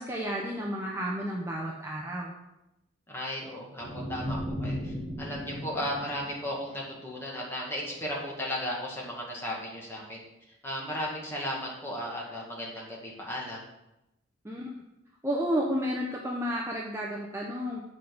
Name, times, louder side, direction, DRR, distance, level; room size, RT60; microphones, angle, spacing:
voice 1, 0.0-2.3 14.4-14.7 15.2-17.8, equal, 15° right, -3 dB, 0.7 m, -31 dB
voice 2, 3.1-10.2 10.6-13.6, equal, 10° left, -3 dB, 1.7 m, -35 dB
sound 1, 3.8-7.1, equal, 30° right, 3.5 m, -36 dB
7.5 x 5.1 x 6.0 m, 0.91 s
head